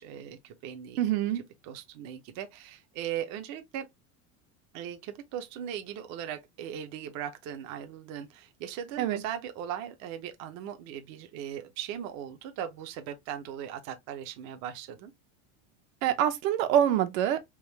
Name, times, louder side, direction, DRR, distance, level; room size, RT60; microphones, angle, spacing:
voice 1, 0.0-1.0 1.6-3.9 4.7-15.1, right 10 dB, 40° right, 0.5 m, -39 dB
voice 2, 1.0-1.4 9.0-9.2 16.0-17.4, right 10 dB, 75° right, 0.9 m, -25 dB
3.6 x 2.5 x 3.0 m
supercardioid pair, 140°, 41 cm